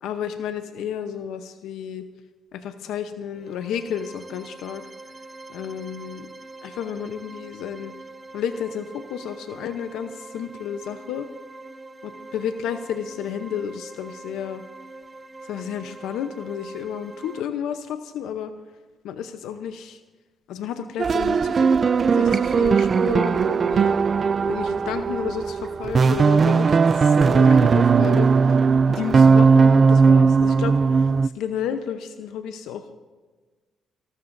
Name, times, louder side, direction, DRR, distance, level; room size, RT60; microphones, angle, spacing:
voice 1, 0.0-2.1 2.5-4.8 5.5-6.3 6.6-7.9 8.3-11.3 12.0-14.6 15.4-18.5 19.0-20.0 20.5-21.7 22.1-23.9 24.4-32.9, left 8 dB, 85° left, 8 dB, 0.8 m, -32 dB
sound 1, 3.3-17.4, right 2 dB, 20° right, 0.7 m, -43 dB
sound 2, 21.0-31.3, right 5 dB, 40° right, 0.3 m, -18 dB
25.0 x 13.0 x 2.7 m, 1.3 s
cardioid pair, 90°, 0 cm